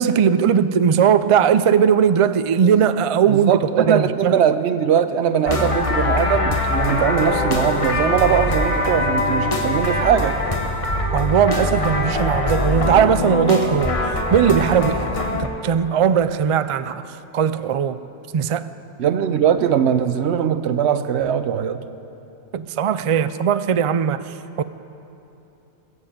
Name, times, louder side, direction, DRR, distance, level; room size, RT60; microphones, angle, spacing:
voice 1, 0.0-3.5 3.8-4.4 11.1-15.1 15.3-18.0 18.3-18.7 22.5-24.6, right 8 dB, 60° right, 13 dB, 0.3 m, -19 dB
voice 2, 3.3-10.4 19.0-21.8, right 8 dB, 80° right, 11 dB, 1.0 m, -20 dB
sound 1, 5.5-15.5, left 2 dB, 30° left, 1.0 m, -22 dB
21.5 x 8.1 x 7.2 m, 2.9 s
omnidirectional pair, 1.1 m